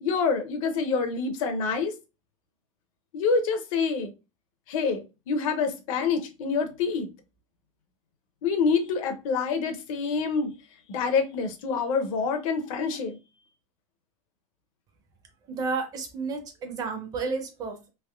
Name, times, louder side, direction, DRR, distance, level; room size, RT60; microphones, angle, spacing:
voice 1, 0.0-1.9 3.1-4.1 4.7-7.1 8.4-10.5 10.9-13.2, left 5 dB, 65° left, 0.7 m, -26 dB
voice 2, 15.5-17.9, right 4 dB, 20° right, 0.4 m, -31 dB
3.4 x 2.8 x 2.3 m
supercardioid pair, 170°, 19 cm